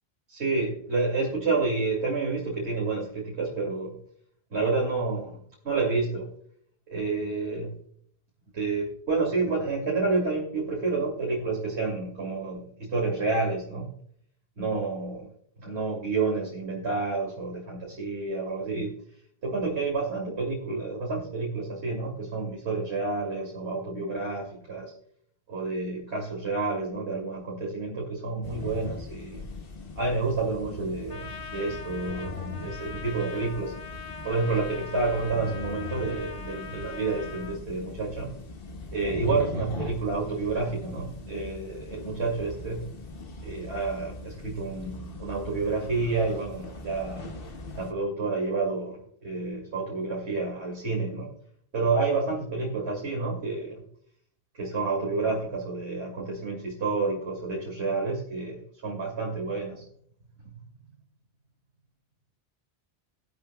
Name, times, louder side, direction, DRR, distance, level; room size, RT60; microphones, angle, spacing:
voice 1, 0.3-4.0 4.5-6.3 6.9-7.7 8.5-13.9 14.6-15.3 15.6-18.9 19.4-24.9 25.5-29.5 30.0-33.7 34.2-38.3 38.9-42.8 43.4-47.3 47.8-51.3 51.7-53.8 54.5-59.8 60.4-60.5, right 3 dB, 80° right, -2 dB, 2.7 m, -29 dB
sound 1, 28.4-47.9, left 3 dB, 60° left, 1.4 m, -40 dB
Trumpet, 31.1-37.6, left 5 dB, 35° left, 0.8 m, -42 dB
16.0 x 12.0 x 2.3 m, 0.63 s
omnidirectional pair, 1.1 m